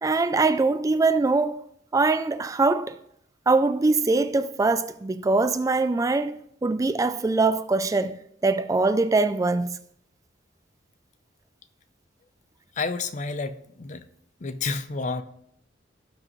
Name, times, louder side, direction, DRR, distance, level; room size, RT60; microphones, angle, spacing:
voice 1, 0.0-1.6 1.9-3.0 3.5-9.8, right 3 dB, 20° right, 0.3 m, -23 dB
voice 2, 12.7-14.0 14.4-15.2, left 4 dB, 40° left, 0.6 m, -30 dB
17.0 x 6.1 x 3.1 m
head